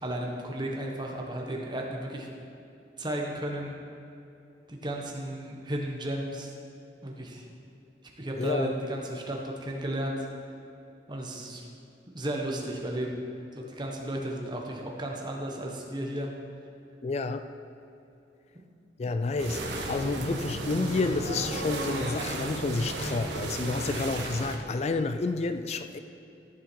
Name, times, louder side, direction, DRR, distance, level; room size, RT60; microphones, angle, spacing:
voice 1, 0.0-2.3 3.0-3.8 4.7-6.5 7.0-7.5 8.2-10.3 11.1-11.7 12.1-13.2 13.5-16.3, right 1 dB, 25° right, 0 dB, 1.3 m, -34 dB
voice 2, 8.4-8.8 17.0-17.5 19.0-26.0, left 3 dB, 35° left, 10 dB, 0.3 m, -30 dB
sound 1, 19.4-24.6, right 2 dB, 80° right, 1.3 m, -34 dB
14.0 x 7.0 x 4.6 m, 2.7 s
head